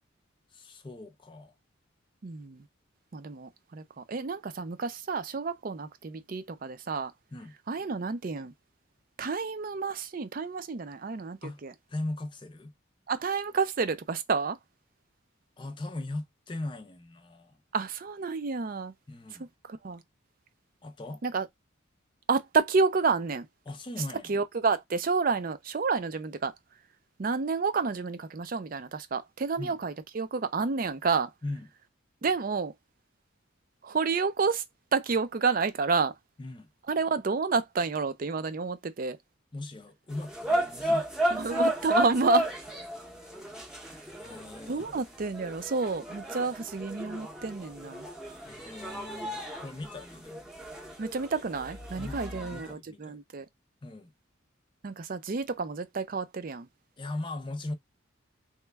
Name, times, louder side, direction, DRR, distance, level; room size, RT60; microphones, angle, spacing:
voice 1, 0.5-1.5 7.3-7.5 11.4-11.6 11.9-12.7 15.6-17.6 19.1-19.5 20.8-21.2 23.7-24.3 29.6-29.8 31.4-31.7 36.4-36.7 39.5-41.1 44.2-44.9 48.5-50.5 52.0-53.2 53.8-54.1 57.0-57.7, left 2 dB, 25° left, 0.4 m, -39 dB
voice 2, 2.2-2.6 3.1-7.1 7.7-8.5 9.2-11.7 13.1-14.6 17.7-18.9 19.7-20.0 21.2-21.5 22.3-23.5 24.3-26.5 27.2-31.3 32.2-32.7 33.8-34.6 34.9-36.1 36.9-39.2 41.3-42.5 44.7-48.1 51.0-53.5 54.8-56.7, right 4 dB, 45° right, 0.4 m, -30 dB
sound 1, 40.1-52.7, equal, 5° right, 0.7 m, -33 dB
3.1 x 2.3 x 3.3 m
head